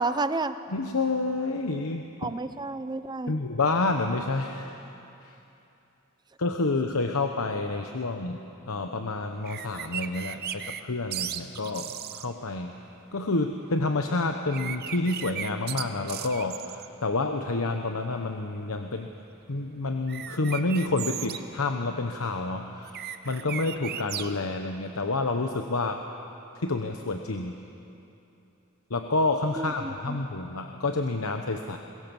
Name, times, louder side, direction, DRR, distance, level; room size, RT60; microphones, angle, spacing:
voice 1, 0.0-0.6 2.2-3.3 29.6-30.2, right 3 dB, 20° right, 11 dB, 0.6 m, -30 dB
voice 2, 0.7-2.3 3.3-4.8 5.2-5.4 6.4-8.4 8.7-12.8 13.1-19.1 19.5-26.0 26.5-27.5 28.9-31.8, left 3 dB, 90° left, 5 dB, 1.0 m, -29 dB
sound 1, 9.4-10.8 11.1-12.3 14.5-16.9 20.1-21.4 22.8-24.3, right 10 dB, 50° right, 0.8 m, -36 dB
23.0 x 21.5 x 7.2 m, 2.8 s
head